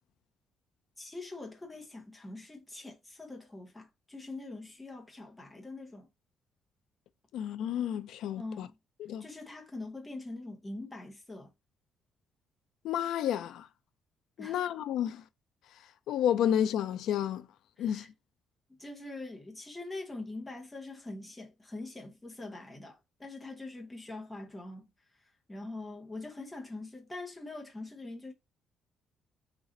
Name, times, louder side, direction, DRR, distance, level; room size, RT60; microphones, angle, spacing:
voice 1, 1.0-6.1 8.4-8.7 9.2-11.5 14.4-14.6 17.8-18.1 18.7-24.9 25.5-28.3, left 2 dB, 10° left, 0.7 m, -43 dB
voice 2, 7.3-8.7 9.0-9.2 12.8-13.7 14.4-15.2 16.1-17.5 17.8-18.0, left 10 dB, 75° left, 0.3 m, -30 dB
3.1 x 2.5 x 3.8 m
cardioid pair, 165°, 0 cm